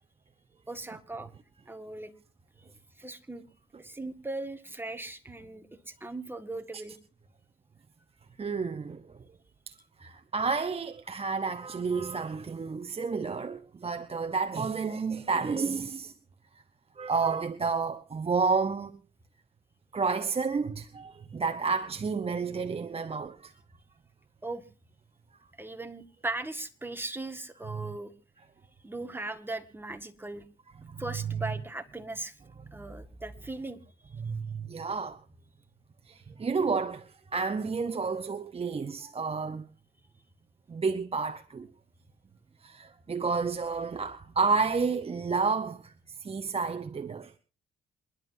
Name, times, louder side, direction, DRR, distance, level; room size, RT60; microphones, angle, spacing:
voice 1, 0.7-1.3 1.7-2.1 3.0-3.5 3.8-7.0 24.4-24.6 25.6-28.1 28.8-30.4 31.0-32.4 32.7-33.8, right 2 dB, 10° right, 1.8 m, -38 dB
voice 2, 8.4-9.2 9.7-9.8 10.0-16.1 17.0-18.9 19.9-23.5 27.7-27.9 30.8-31.0 34.2-35.2 36.1-39.7 40.7-41.7 42.6-47.3, right 4 dB, 30° right, 0.9 m, -30 dB
27.0 x 11.0 x 2.7 m
cardioid pair, 90°, 20 cm